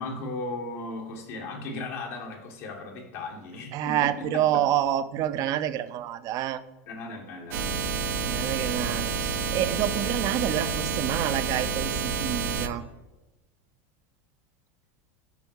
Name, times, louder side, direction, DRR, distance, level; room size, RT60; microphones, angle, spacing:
voice 1, 0.0-4.6 6.8-7.8, left 2 dB, 75° left, 0 dB, 1.6 m, -36 dB
voice 2, 3.7-6.6 8.2-12.8, right 11 dB, 50° right, 12 dB, 0.5 m, -28 dB
sound 1, 7.5-12.7, right 5 dB, 85° right, 0.8 m, -29 dB
6.9 x 5.3 x 4.6 m, 1.0 s
supercardioid pair, 110°, 8 cm